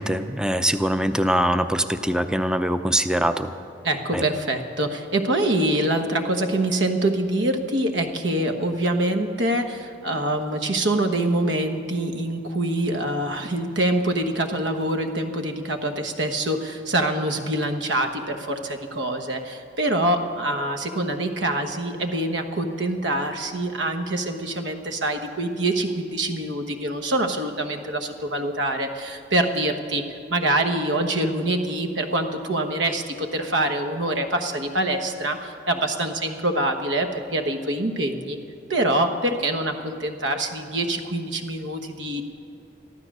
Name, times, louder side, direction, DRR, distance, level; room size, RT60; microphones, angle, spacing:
voice 1, 0.0-3.5 4.1-4.2, equal, 5° right, 9 dB, 0.5 m, -23 dB
voice 2, 3.8-38.4 38.7-42.2, right 1 dB, 75° right, 5 dB, 1.3 m, -25 dB
14.5 x 12.5 x 6.2 m, 2.7 s
head